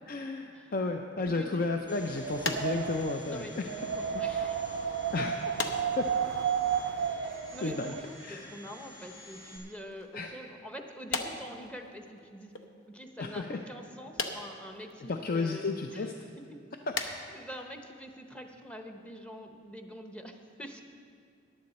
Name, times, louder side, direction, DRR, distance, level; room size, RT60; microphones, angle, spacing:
voice 1, 0.1-3.7 4.1-4.5 5.1-5.4 6.0-6.1 7.6-7.9 8.2-8.5 10.1-10.3 13.2-13.6 15.1-16.1, left 3 dB, 50° left, 5 dB, 0.5 m, -33 dB
voice 2, 1.2-1.6 3.2-5.2 6.9-12.5 12.9-16.1 17.0-20.8, equal, 5° left, 4 dB, 0.8 m, -46 dB
Domestic sounds home sounds, 1.9-9.6, left 1 dB, 25° left, 2.3 m, -50 dB
Wind, 2.0-8.0, right 8 dB, 75° right, 0.4 m, -32 dB
sound 1, 2.4-4.1 4.4-4.7 5.6-6.5 6.8-7.9 8.3-8.7 9.5-10.1 11.0-12.2 12.5-12.6 14.2-14.9 15.6-15.7 16.1-16.5 16.9-17.2 17.5-17.7 18.0-18.2 18.9-19.0 19.3-19.4 19.6-19.7, left 3 dB, 85° left, 0.9 m, -38 dB
14.5 x 10.5 x 4.2 m, 2.3 s
head